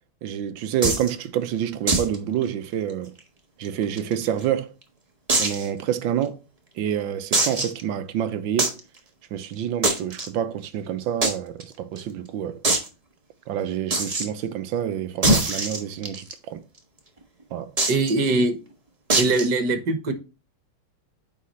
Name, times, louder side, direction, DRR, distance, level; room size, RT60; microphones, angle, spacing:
voice 1, 0.2-3.1 3.6-4.7 5.4-6.4 6.8-8.8 9.3-12.6 13.5-16.6 17.5-17.7, right 10 dB, 75° right, 1.4 m, -28 dB
sound 1, 0.8-1.1 1.9-2.1 2.4-2.5 2.9-3.0 3.6-4.4 5.3-5.7 6.2-6.3 7.3-7.8 8.6-8.8 9.8-10.3 11.2-11.3 11.6-11.7 12.0-12.1 12.6-12.9 13.9-14.3 15.2-16.3 17.8-18.1 19.1-19.5, right 2 dB, 20° right, 1.2 m, -22 dB
voice 2, 17.9-18.6 19.2-20.1, right 2 dB, 55° right, 1.9 m, -22 dB
9.5 x 4.7 x 3.2 m
omnidirectional pair, 2.2 m